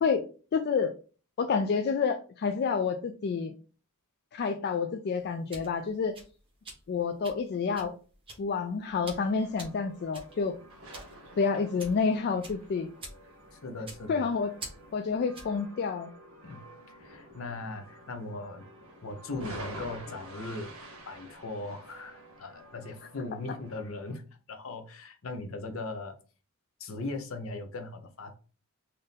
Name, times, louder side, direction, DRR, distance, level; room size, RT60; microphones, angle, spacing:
voice 1, 0.5-0.9 1.4-3.6 4.3-6.2 6.9-7.9 8.4-10.5 11.4-12.9 14.1-14.5 14.9-16.1, left 5 dB, 50° left, 0.3 m, -29 dB
sound 1, 5.2-15.6, right 2 dB, 25° right, 1.2 m, -48 dB
sound 2, 9.2-24.2, right 1 dB, 70° right, 1.5 m, -49 dB
voice 2, 13.5-14.3 16.4-18.6 19.0-20.7 21.1-26.2 26.8-28.3, left 2 dB, 65° left, 0.7 m, -39 dB
4.1 x 2.6 x 3.4 m
head